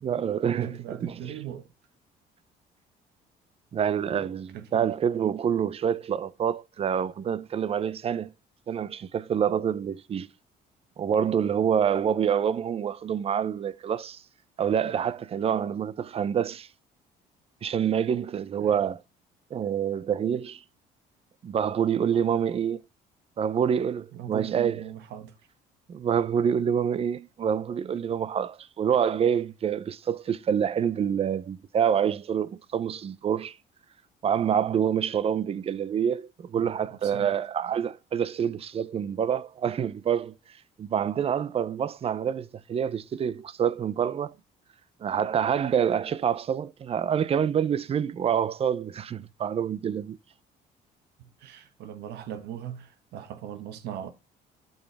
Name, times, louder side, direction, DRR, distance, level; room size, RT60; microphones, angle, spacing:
voice 1, 0.0-1.3 3.7-8.3 8.7-10.3 11.0-14.2 14.6-16.7 17.6-19.0 19.5-20.6 21.4-22.8 23.4-24.8 25.9-33.6 34.2-40.3 40.8-44.3 45.0-50.2, right 8 dB, 35° right, 0.6 m, -27 dB
voice 2, 0.6-1.7 4.5-4.9 18.6-18.8 24.1-25.3 36.5-37.3 51.2-54.1, right 10 dB, 80° right, 1.4 m, -39 dB
11.5 x 5.5 x 3.4 m
cardioid pair, 110°, 17 cm